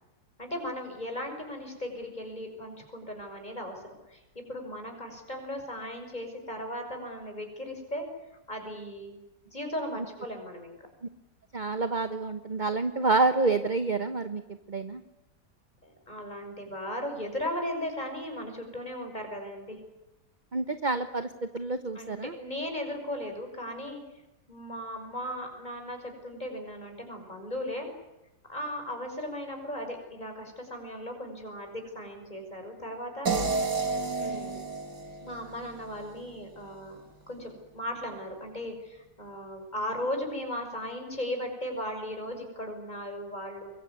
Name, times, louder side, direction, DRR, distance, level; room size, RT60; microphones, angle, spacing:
voice 1, 0.4-8.0 8.5-9.2 9.5-10.8 15.8-19.8 21.9-24.0 24.5-27.9 28.5-33.6 34.2-34.6 35.2-37.0 37.3-43.7, left 1 dB, 25° left, 4 dB, 6.0 m, -37 dB
voice 2, 11.5-15.0 20.5-22.3, right 3 dB, 30° right, 9 dB, 1.1 m, -28 dB
sound 1, 33.3-36.3, right 4 dB, 80° right, 3.2 m, -31 dB
24.5 x 22.0 x 9.7 m, 0.94 s
omnidirectional pair, 1.8 m